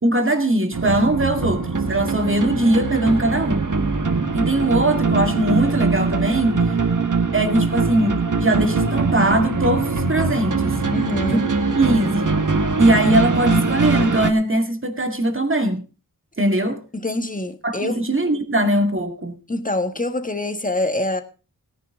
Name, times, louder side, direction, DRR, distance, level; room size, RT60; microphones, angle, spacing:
voice 1, 0.0-3.6 4.3-6.7 7.3-10.7 11.3-11.4 11.8-12.3 12.8-15.8 16.4-16.8 17.6-19.4, right 1 dB, 35° right, 2.0 m, -20 dB
sound 1, 0.7-14.3, right 4 dB, 55° right, 1.6 m, -22 dB
voice 2, 10.9-11.5 16.9-18.0 19.5-21.2, left 2 dB, 20° left, 1.6 m, -25 dB
17.5 x 9.9 x 3.7 m
wide cardioid pair, 65°, 36 cm